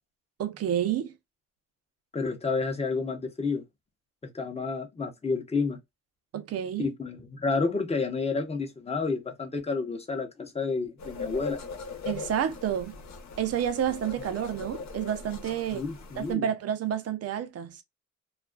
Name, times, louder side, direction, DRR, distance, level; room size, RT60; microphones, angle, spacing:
voice 1, 0.4-1.1 6.3-6.9 12.1-13.0 13.4-15.9 16.2-17.8, right 9 dB, 55° right, 0.6 m, -29 dB
voice 2, 2.1-3.6 4.2-5.8 6.8-11.6 15.7-16.5, left 4 dB, 20° left, 0.7 m, -30 dB
sound 1, 11.0-16.3, left 4 dB, 65° left, 0.9 m, -40 dB
2.4 x 2.3 x 2.3 m
cardioid pair, 90°, 30 cm